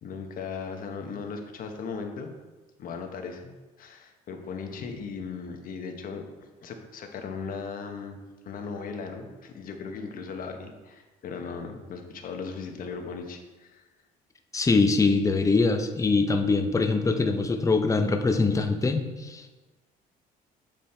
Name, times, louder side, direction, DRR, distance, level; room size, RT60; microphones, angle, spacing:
voice 1, 0.0-2.3 2.8-8.2 8.4-13.8, left 5 dB, 55° left, 4 dB, 1.1 m, -37 dB
voice 2, 14.5-19.5, left 3 dB, 20° left, 6 dB, 0.7 m, -23 dB
7.8 x 5.1 x 4.3 m, 1.2 s
cardioid pair, 110°, 17 cm